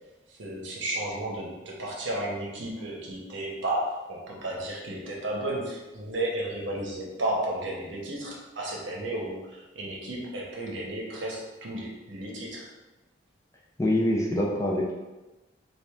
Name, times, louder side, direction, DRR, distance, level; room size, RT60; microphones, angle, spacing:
voice 1, 0.4-12.7, right 1 dB, 70° right, -3 dB, 0.9 m, -33 dB
voice 2, 13.8-14.9, left 1 dB, 15° left, -2 dB, 0.4 m, -25 dB
3.3 x 2.5 x 3.5 m, 1.1 s
head